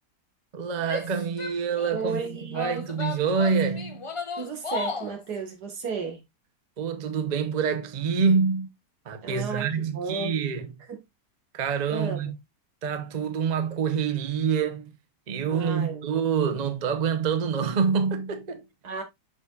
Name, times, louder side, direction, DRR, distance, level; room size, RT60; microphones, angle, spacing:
voice 1, 0.5-2.2 2.5-4.1 6.8-8.7 9.1-10.8 11.5-12.4 12.8-14.9 15.3-18.6, right 6 dB, 40° right, 0.7 m, -26 dB
Female speech woman speaking / Yell, 0.8-2.1 2.5-5.2, left 4 dB, 35° left, 0.5 m, -35 dB
voice 2, 1.9-2.8 4.4-6.2 9.2-10.3 10.9-11.0 11.9-12.4 15.5-16.1 18.8-19.0, right 5 dB, 80° right, 2.1 m, -33 dB
6.8 x 6.1 x 2.4 m
omnidirectional pair, 1.7 m